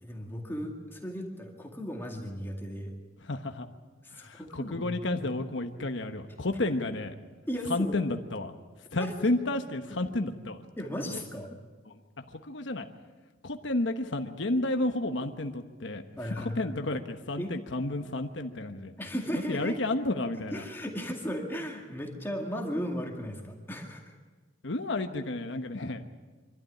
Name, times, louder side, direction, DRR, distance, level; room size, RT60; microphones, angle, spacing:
voice 1, 0.0-2.9 4.0-5.2 7.5-8.0 9.0-9.1 10.8-11.5 16.2-16.8 17.4-17.5 19.0-19.8 20.3-24.2, equal, 10° left, 0 dB, 2.2 m, -36 dB
voice 2, 3.2-3.7 4.1-7.2 7.7-8.5 8.9-10.6 11.0-11.2 11.9-12.9 13.4-16.0 16.4-18.9 19.5-20.6 24.6-26.1, left 2 dB, 70° left, 6 dB, 1.2 m, -31 dB
25.5 x 12.5 x 9.9 m, 1.4 s
head